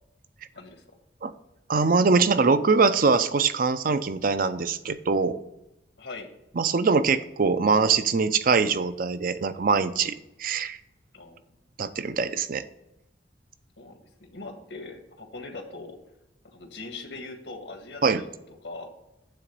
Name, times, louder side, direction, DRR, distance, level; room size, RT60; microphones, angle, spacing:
voice 1, 1.7-5.4 6.6-10.8 11.8-12.6 18.0-18.2, right 4 dB, 50° right, 12 dB, 0.5 m, -23 dB
voice 2, 6.0-6.3 11.1-11.6 13.8-16.0 16.4-18.9, left 3 dB, 85° left, 4 dB, 1.7 m, -41 dB
9.2 x 3.9 x 6.7 m, 0.92 s
head